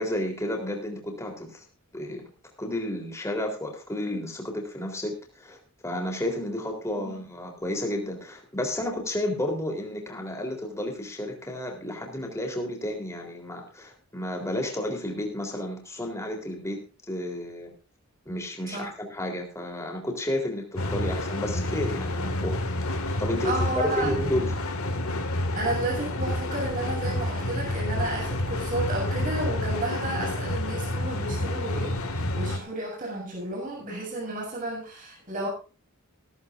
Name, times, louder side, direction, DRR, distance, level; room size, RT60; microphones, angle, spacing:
voice 1, 0.0-1.6 1.9-2.2 2.6-17.7 18.3-22.6 23.2-23.7 24.0-24.5, left 1 dB, 15° left, 2 dB, 3.7 m, -32 dB
voice 2, 6.9-7.3 18.7-18.9 23.4-24.1 25.6-35.5, right 2 dB, 40° right, -2 dB, 7.2 m, -32 dB
sound 1, 20.8-32.6, left 1 dB, 75° left, 2.1 m, -29 dB
16.5 x 15.5 x 2.6 m, 0.35 s
head